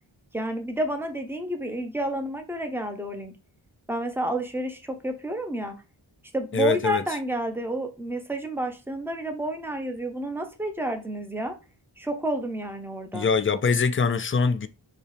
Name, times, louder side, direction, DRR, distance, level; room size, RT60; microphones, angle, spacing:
voice 1, 0.3-3.3 3.9-5.8 6.3-11.5 12.0-13.3, right 1 dB, 5° right, 0.7 m, -30 dB
voice 2, 6.5-7.0 13.1-14.7, left 5 dB, 30° left, 0.4 m, -23 dB
4.2 x 3.2 x 3.3 m
wide cardioid pair, 50°, 47 cm